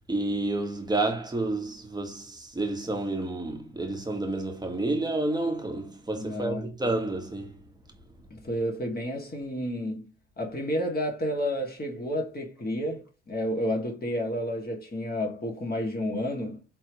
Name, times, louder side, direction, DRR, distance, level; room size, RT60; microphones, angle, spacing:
voice 1, 0.1-7.7, right 2 dB, 10° right, 1.6 m, -30 dB
voice 2, 6.1-6.7 8.3-10.1 10.4-16.6, equal, 25° left, 2.3 m, -31 dB
4.4 x 3.3 x 3.1 m
hypercardioid pair, 65°, 34 cm